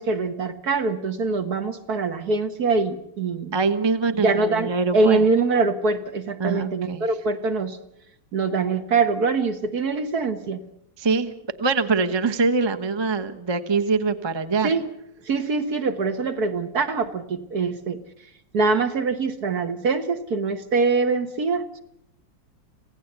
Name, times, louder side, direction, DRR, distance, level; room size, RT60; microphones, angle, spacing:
voice 1, 0.0-3.5 4.2-7.8 8.3-10.6 14.6-14.9 15.3-18.0 18.5-21.8, right 3 dB, 55° right, 7 dB, 1.9 m, -23 dB
voice 2, 3.5-5.2 6.4-7.1 11.0-11.3 11.6-14.7, right 4 dB, 20° right, 7 dB, 0.8 m, -23 dB
27.0 x 16.5 x 8.1 m, 0.76 s
omnidirectional pair, 2.1 m